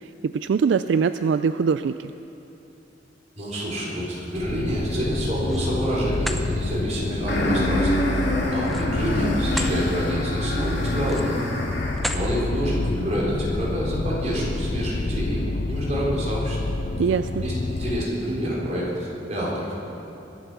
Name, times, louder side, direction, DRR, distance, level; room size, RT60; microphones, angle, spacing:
voice 1, 0.2-2.1 17.0-17.4, right 6 dB, 75° right, 11 dB, 0.3 m, -22 dB
voice 2, 3.4-8.0 8.5-11.4 12.1-16.6 17.4-19.7, equal, 40° right, -5 dB, 3.9 m, -28 dB
sound 1, 4.4-18.0, left 2 dB, 45° left, 0.5 m, -28 dB
sound 2, 5.1-5.7 6.1-6.5 8.6-9.8 10.2-10.4 11.0-11.4 11.9-12.3, equal, ahead, 0.7 m, -33 dB
sound 3, 7.3-12.2, left 1 dB, 65° left, 3.0 m, -26 dB
22.5 x 7.9 x 6.1 m, 2.9 s
head